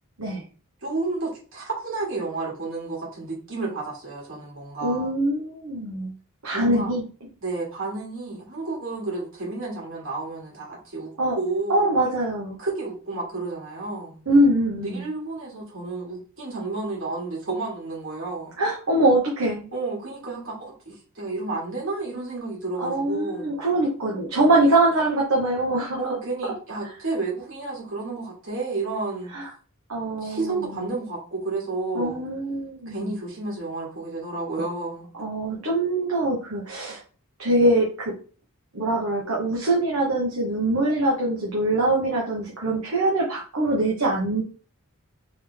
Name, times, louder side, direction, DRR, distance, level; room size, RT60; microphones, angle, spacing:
voice 1, 0.8-5.1 6.5-6.9 7.4-11.9 12.6-14.2 14.8-18.5 19.7-23.5 26.0-29.3 30.2-32.2 32.9-35.1, right 3 dB, 65° right, -3 dB, 2.5 m, -31 dB
voice 2, 4.8-6.1 6.4-7.3 11.2-11.4 11.7-12.6 14.3-15.0 18.6-19.7 22.8-26.0 26.4-26.5 29.3-29.5 29.9-30.9 31.9-33.1 35.2-37.0 37.4-38.1 38.7-44.4, right 1 dB, 90° right, -3 dB, 1.1 m, -23 dB
3.8 x 3.4 x 3.5 m, 0.39 s
head